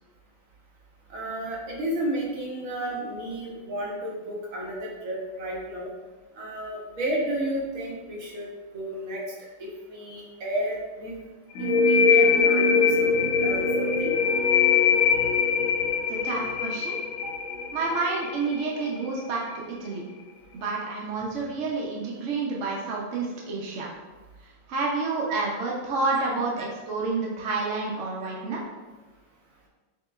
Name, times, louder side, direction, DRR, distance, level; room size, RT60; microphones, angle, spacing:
voice 1, 1.1-5.9 6.4-8.5 8.7-9.2 9.6-11.1 11.6-14.1 25.3-25.4 26.1-26.2, right 1 dB, 55° right, -3 dB, 1.1 m, -32 dB
sound 1, 11.6-19.0, left 5 dB, 80° left, 1.3 m, -22 dB
voice 2, 16.1-17.0 17.7-20.1 20.5-23.9 24.7-28.6, right 3 dB, 75° right, -3 dB, 0.6 m, -29 dB
5.8 x 2.9 x 2.3 m, 1.2 s
omnidirectional pair, 2.2 m